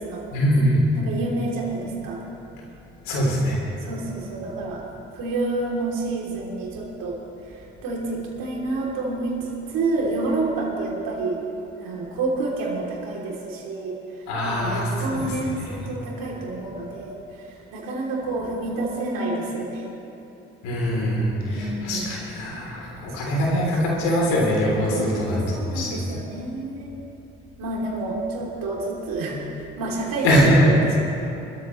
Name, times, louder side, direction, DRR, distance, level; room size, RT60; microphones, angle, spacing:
voice 1, 0.3-0.8 3.1-3.8 14.3-15.3 20.6-26.1 30.2-30.7, equal, 85° left, -3 dB, 3.5 m, -22 dB
voice 2, 0.9-2.2 3.8-4.9 5.1-11.4 11.8-20.0 21.4-22.0 23.2-23.9 24.9-27.0 27.6-31.0, right 2 dB, 70° right, -3 dB, 3.2 m, -29 dB
25.0 x 13.5 x 3.2 m, 3.0 s
hypercardioid pair, 45°, 34 cm